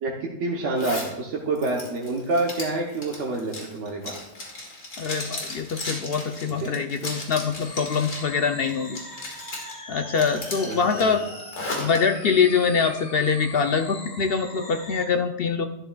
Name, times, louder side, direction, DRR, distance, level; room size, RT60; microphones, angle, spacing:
voice 1, 0.0-4.2 6.4-6.8 10.6-11.2, right 2 dB, 70° right, -1 dB, 1.2 m, -28 dB
Zipper (clothing), 0.8-1.1 1.6-8.3 8.7-9.7 10.1-12.0, left 2 dB, 80° left, 2.2 m, -35 dB
voice 2, 5.0-9.0 9.9-11.2 11.8-15.7, left 5 dB, 60° left, 7 dB, 0.7 m, -24 dB
sound 1, 7.6-15.1, left 1 dB, 35° left, 1.4 m, -41 dB
11.5 x 11.0 x 2.3 m, 0.91 s
omnidirectional pair, 1.3 m